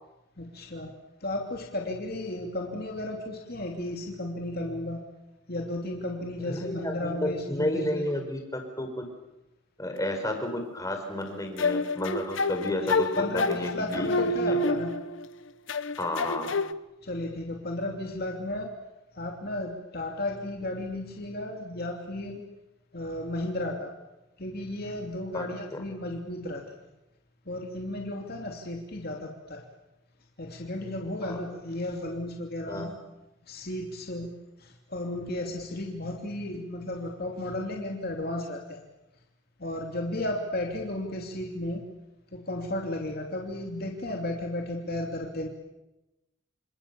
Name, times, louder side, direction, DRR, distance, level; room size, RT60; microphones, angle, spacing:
voice 1, 0.4-0.9 1.2-5.0 5.5-8.1 12.8-14.9 17.0-18.7 19.1-22.4 22.9-23.9 24.4-26.6 27.5-29.6 30.4-32.9 33.5-34.3 34.6-38.8 39.6-41.8 42.3-45.5, left 1 dB, 50° left, 1 dB, 3.0 m, -34 dB
voice 2, 6.4-9.0 9.8-14.1 14.4-14.7 16.0-16.5 25.3-25.4 25.7-25.8 31.2-31.4 32.7-33.0, left 1 dB, 15° left, 4 dB, 5.0 m, -32 dB
sound 1, 11.6-15.3 15.7-16.7, left 2 dB, 65° left, 1.0 m, -28 dB
29.0 x 27.5 x 7.1 m, 0.97 s
head